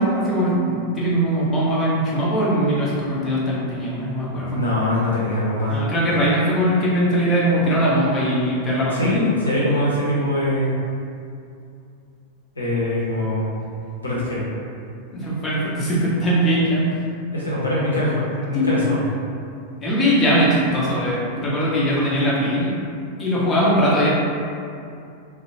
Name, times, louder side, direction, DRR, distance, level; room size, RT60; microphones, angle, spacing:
voice 1, 0.0-4.6 5.7-9.3 15.1-17.0 18.5-18.7 19.8-22.7 23.2-24.1, equal, 20° left, -7 dB, 0.7 m, -20 dB
voice 2, 4.5-5.8 8.9-10.8 12.5-13.6 14.0-14.5 17.3-19.0, left 1 dB, 75° left, -7 dB, 0.8 m, -22 dB
2.6 x 2.0 x 2.9 m, 2.5 s
figure-of-eight pair, 90°, 0 cm